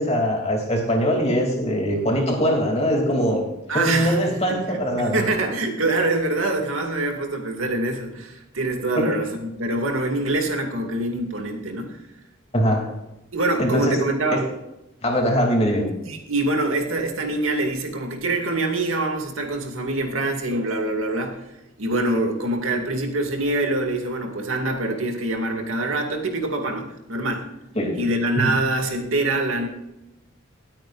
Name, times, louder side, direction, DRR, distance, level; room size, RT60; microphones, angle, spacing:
voice 1, 0.0-3.4 3.7-5.2 9.0-9.2 12.5-12.9 13.6-14.0 14.3-14.4 15.0-15.9 27.7-28.0 28.4-28.5, equal, 30° left, 1 dB, 2.9 m, -22 dB
voice 2, 3.7-12.0 13.3-14.4 16.0-21.4 21.8-27.5 27.9-29.7, right 2 dB, 85° right, 2 dB, 2.4 m, -25 dB
20.5 x 8.9 x 2.6 m, 0.93 s
head